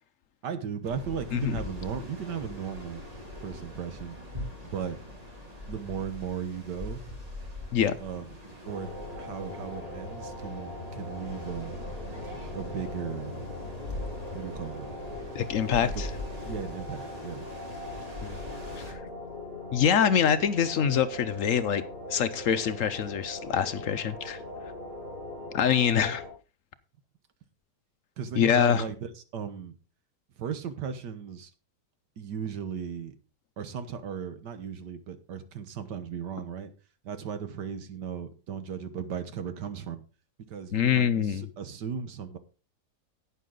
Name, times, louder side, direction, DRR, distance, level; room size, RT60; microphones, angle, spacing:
voice 1, 0.4-3.0 3.4-4.2 4.6-5.0 5.7-7.0 8.0-8.4 8.7-11.8 12.5-13.4 14.3-14.9 15.8-16.0 16.5-17.5 28.2-29.7 30.4-31.5 32.2-33.2 33.6-36.7 37.0-40.0 40.5-42.4, right 7 dB, 80° right, 1.8 m, -36 dB
sound 1, 0.8-18.9, left 1 dB, 20° right, 3.0 m, -42 dB
sound 2, 8.6-26.3, left 2 dB, 35° left, 5.0 m, -40 dB
voice 2, 15.3-16.1 18.9-19.0 19.7-21.8 22.1-24.4 25.5-26.2 28.4-28.8 40.7-41.4, left 8 dB, 60° left, 0.9 m, -25 dB
11.5 x 9.2 x 3.8 m
omnidirectional pair, 1.8 m